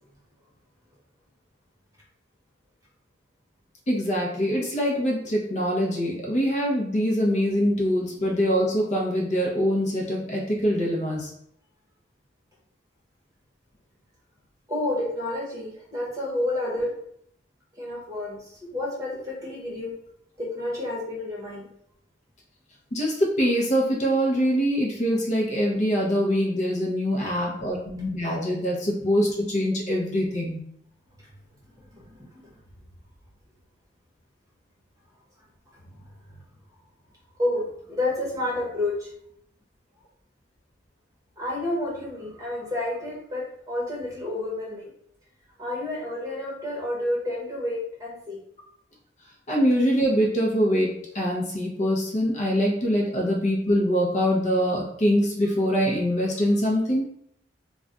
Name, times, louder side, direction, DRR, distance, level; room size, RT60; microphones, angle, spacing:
voice 1, 3.9-11.3 22.9-30.7 49.5-57.1, equal, 40° left, -2 dB, 0.6 m, -24 dB
voice 2, 14.7-16.9 17.8-19.9 20.4-21.7 31.9-32.2 32.4-32.5 37.4-39.1 41.4-44.9 45.6-48.4, left 1 dB, 20° right, -4 dB, 0.9 m, -30 dB
2.3 x 2.2 x 3.8 m, 0.70 s
head